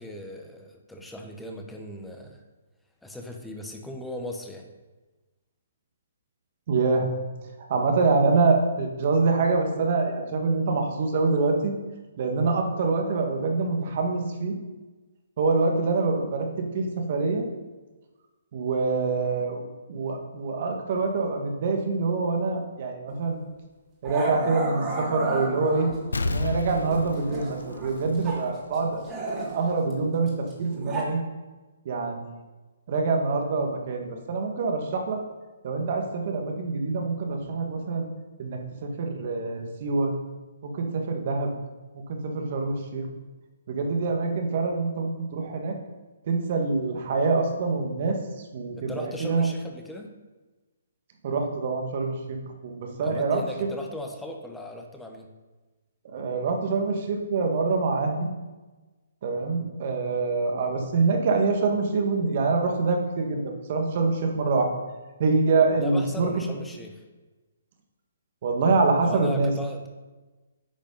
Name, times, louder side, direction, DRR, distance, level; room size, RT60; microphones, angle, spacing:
voice 1, 0.0-2.4 3.0-4.7 48.7-50.1 53.0-55.3 65.8-67.0 69.0-69.9, left 1 dB, 5° left, 2 dB, 1.1 m, -38 dB
voice 2, 6.7-7.1 7.6-11.7 12.2-14.6 15.4-17.5 18.5-19.6 19.9-23.4 24.0-25.9 26.2-31.2 31.8-32.3 32.9-35.2 35.6-38.1 38.4-40.1 40.6-41.5 41.9-43.1 43.7-45.8 46.2-49.5 51.2-53.4 56.0-58.3 59.2-64.7 65.2-66.3 68.4-69.5, right 3 dB, 50° right, 3 dB, 1.7 m, -25 dB
Growling, 23.1-23.3 24.0-26.1 26.7-28.5 28.7-31.0, right 3 dB, 20° right, 2.3 m, -34 dB
Explosion, 26.1-28.7 29.1-29.2, left 3 dB, 85° left, 0.6 m, -31 dB
8.9 x 5.2 x 5.5 m, 1.2 s
hypercardioid pair, 140°, 0 cm